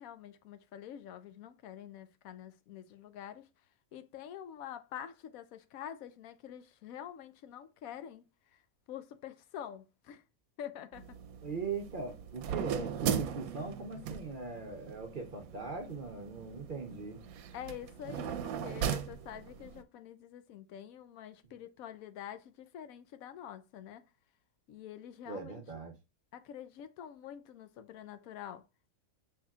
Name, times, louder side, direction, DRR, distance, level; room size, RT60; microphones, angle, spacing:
voice 1, 0.0-3.5 3.9-8.6 8.9-10.2 10.6-11.2 17.5-24.0 24.7-25.6 26.3-28.6, left 10 dB, 80° left, 1.0 m, -47 dB
sound 1, 10.9-19.8, right 8 dB, 85° right, 1.0 m, -39 dB
voice 2, 11.4-17.2 25.3-25.9, right 4 dB, 45° right, 0.8 m, -40 dB
5.5 x 3.5 x 2.3 m
omnidirectional pair, 1.5 m